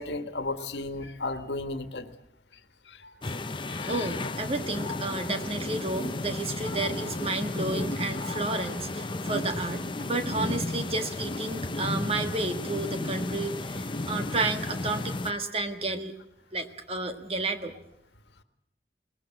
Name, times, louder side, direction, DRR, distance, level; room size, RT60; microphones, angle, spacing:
voice 1, 0.0-2.1 2.9-3.1 3.8-4.1 9.3-9.4, left 2 dB, 75° left, 10 dB, 1.6 m, -34 dB
sound 1, 3.2-15.3, left 2 dB, 30° left, 0.8 m, -33 dB
voice 2, 3.7-16.1 16.5-17.7, right 2 dB, 35° right, 7 dB, 1.6 m, -31 dB
22.0 x 20.0 x 7.7 m, 0.75 s
head